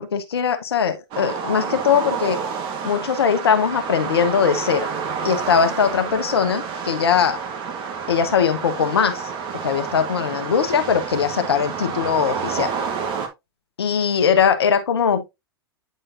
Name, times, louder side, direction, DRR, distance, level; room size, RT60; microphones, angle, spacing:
voice 1, 0.0-2.4 2.8-4.9 5.2-7.4 8.1-9.3 9.6-12.7 13.8-15.2, left 7 dB, 80° left, 1.0 m, -20 dB
sound 1, 1.1-13.3, right 6 dB, 40° right, 1.4 m, -29 dB
9.2 x 4.4 x 2.6 m
hypercardioid pair, 100°, 13 cm